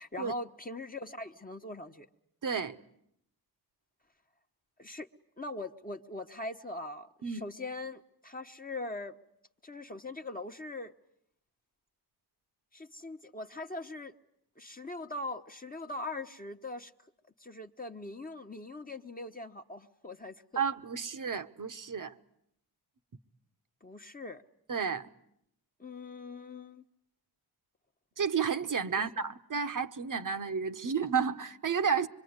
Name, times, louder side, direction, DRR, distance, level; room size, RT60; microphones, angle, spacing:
voice 1, 0.0-2.1 4.8-5.1 5.4-9.2 9.6-10.9 12.7-14.1 14.6-16.9 17.4-20.6 23.8-24.4 25.8-26.8 28.9-29.2, left 2 dB, 20° left, 1.1 m, -41 dB
voice 2, 2.4-2.8 7.2-7.4 20.6-22.1 24.7-25.1 28.2-32.1, right 6 dB, 50° right, 1.2 m, -31 dB
25.0 x 23.5 x 9.6 m
cardioid pair, 65°, 40 cm